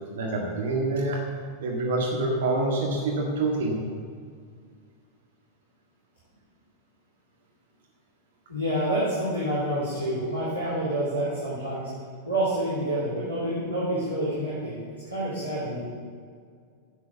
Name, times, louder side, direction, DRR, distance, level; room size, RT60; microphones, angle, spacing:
voice 1, 0.1-1.2 1.6-3.8, right 2 dB, 60° right, -1 dB, 1.8 m, -26 dB
voice 2, 8.5-11.9 12.2-15.8, right 1 dB, 90° right, -10 dB, 4.0 m, -28 dB
11.0 x 9.0 x 7.1 m, 2.1 s
figure-of-eight pair, 90°, 0 cm